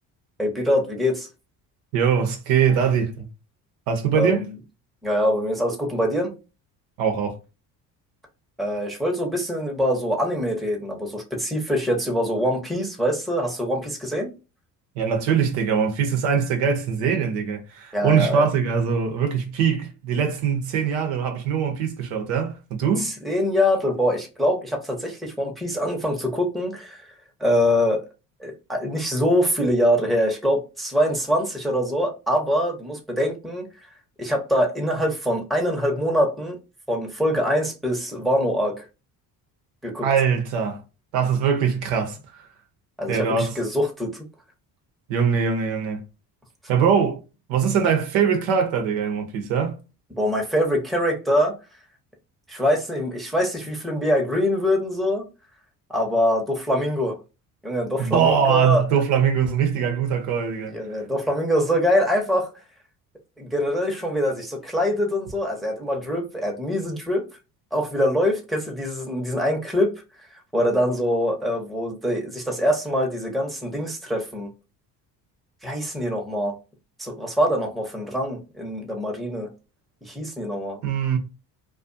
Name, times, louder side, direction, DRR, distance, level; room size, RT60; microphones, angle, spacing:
voice 1, 0.4-1.3 4.2-4.6 5.0-6.3 8.6-14.3 17.9-18.5 23.0-27.1 27.4-28.0 28.4-33.7 34.2-36.6 36.9-38.9 39.8-40.1 43.0-44.2 50.2-51.5 52.5-55.2 55.9-57.1 57.6-58.9 60.7-62.5 63.4-67.2 67.7-69.9 70.3-74.5 75.6-76.6 77.0-79.5 80.0-80.8, equal, ahead, 0.8 m, -24 dB
voice 2, 1.9-3.3 3.9-4.4 7.0-7.3 15.0-23.1 40.0-40.8 41.1-42.2 43.1-43.6 45.1-46.0 46.7-47.2 47.5-49.7 58.0-60.7 80.8-81.2, right 7 dB, 75° right, 0.8 m, -22 dB
2.4 x 2.3 x 2.5 m
hypercardioid pair, 60°, 47 cm